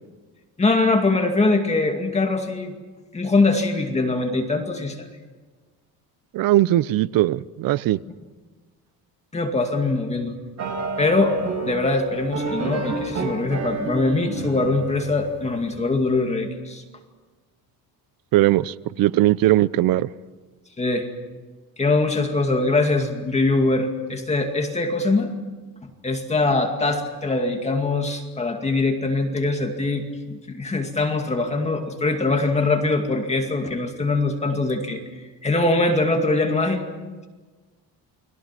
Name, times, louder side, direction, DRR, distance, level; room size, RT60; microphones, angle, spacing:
voice 1, 0.6-2.7 3.1-5.0 9.3-10.3 11.0-16.8 20.8-21.1 21.8-25.3 26.0-35.0 35.4-36.8, left 3 dB, 20° left, 2.3 m, -22 dB
voice 2, 6.3-8.0 18.3-20.1, right 15 dB, 65° right, 0.7 m, -19 dB
sound 1, 10.6-15.8, right 4 dB, 45° right, 5.4 m, -30 dB
30.0 x 22.0 x 5.9 m
cardioid pair, 155°, 36 cm